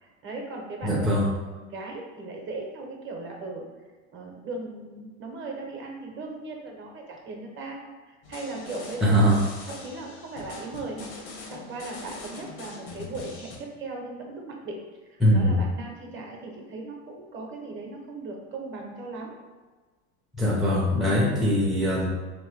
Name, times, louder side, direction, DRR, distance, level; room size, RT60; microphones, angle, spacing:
voice 1, 0.0-3.7 4.1-9.2 9.6-11.1 11.5-14.8 15.0-19.3 20.5-20.6, right 2 dB, 35° right, 0 dB, 1.0 m, -38 dB
voice 2, 0.8-1.2 9.0-9.4 15.2-15.6 20.4-22.1, equal, ahead, -5 dB, 0.5 m, -21 dB
sound 1, 8.2-13.6, left 3 dB, 85° left, 1.1 m, -42 dB
3.5 x 3.0 x 4.6 m, 1.4 s
supercardioid pair, 130°, 34 cm